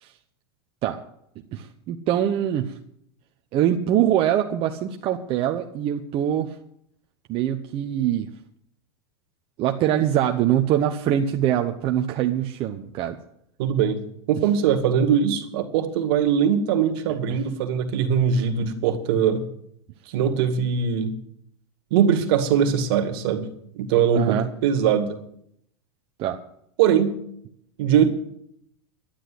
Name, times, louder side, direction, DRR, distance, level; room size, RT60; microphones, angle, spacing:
voice 1, 1.5-2.8 3.5-6.5 7.3-8.3 9.6-13.2 17.1-17.4 24.1-24.5 26.2-26.4, right 11 dB, 40° right, 4 dB, 0.9 m, -23 dB
voice 2, 13.6-14.0 14.3-19.5 20.1-21.1 21.9-23.5 23.7-25.2 26.8-27.2 27.8-28.1, right 8 dB, 60° right, 6 dB, 2.1 m, -21 dB
11.5 x 10.0 x 7.9 m, 0.73 s
hypercardioid pair, 120°, 14 cm